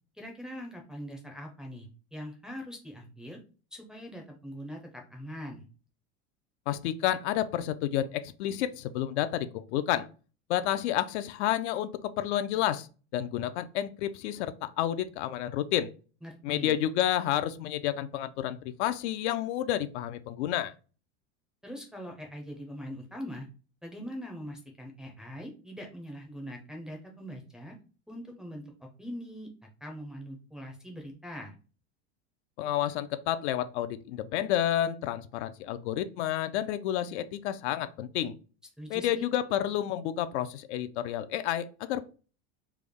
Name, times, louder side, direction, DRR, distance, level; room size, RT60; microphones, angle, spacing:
voice 1, 0.1-3.4 3.7-5.6 16.2-16.8 21.6-23.5 23.8-27.8 28.1-29.5 29.8-31.5 38.8-39.3, equal, ahead, 0 dB, 0.4 m, -42 dB
voice 2, 6.7-10.1 10.5-12.9 13.1-15.9 16.4-20.7 32.6-38.3 38.9-42.0, left 12 dB, 75° left, 12 dB, 0.5 m, -30 dB
3.3 x 2.0 x 3.5 m, 0.35 s
supercardioid pair, 145°, 34 cm